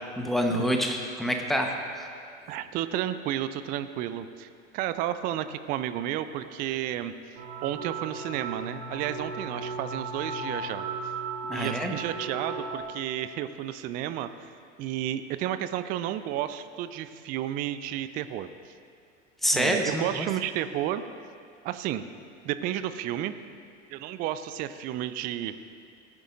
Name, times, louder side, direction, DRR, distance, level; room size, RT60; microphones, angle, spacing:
voice 1, 0.2-2.1 11.5-11.9 19.4-20.3, equal, ahead, 3 dB, 1.0 m, -27 dB
voice 2, 2.5-4.5 4.7-7.1 7.6-10.8 11.5-14.5 14.8-18.7 19.5-21.0 21.6-22.0 22.4-23.3 23.9-25.5, right 12 dB, 25° right, 12 dB, 0.4 m, -32 dB
sound 1, 7.3-12.8, right 4 dB, 55° right, 3.2 m, -36 dB
18.5 x 11.0 x 2.6 m, 2.3 s
figure-of-eight pair, 80°, 38 cm